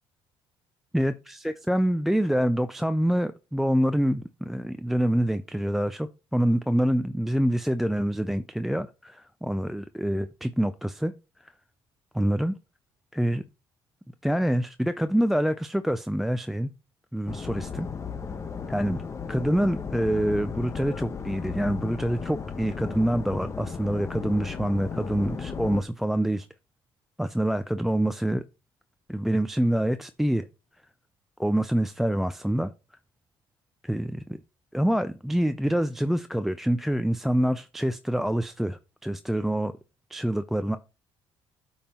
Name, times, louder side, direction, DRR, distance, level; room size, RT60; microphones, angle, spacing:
voice 1, 0.9-11.1 12.1-12.6 13.1-13.4 14.2-16.7 17.1-17.9 18.7-19.0 19.3-26.5 27.2-28.4 29.1-30.5 31.4-32.7 33.8-34.4 34.7-39.7 40.1-40.8, equal, 5° right, 0.4 m, -26 dB
sound 1, 17.3-25.8, left 6 dB, 30° left, 1.0 m, -35 dB
8.7 x 5.5 x 2.9 m
cardioid pair, 90°, 9 cm